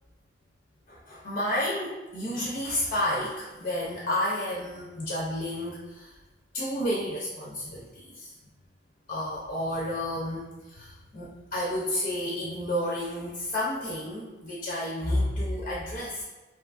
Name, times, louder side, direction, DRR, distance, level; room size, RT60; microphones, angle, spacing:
voice 1, 0.9-6.1 6.5-8.3 9.1-16.2, left 1 dB, 40° left, -5 dB, 0.4 m, -31 dB
2.6 x 2.4 x 2.3 m, 1.1 s
head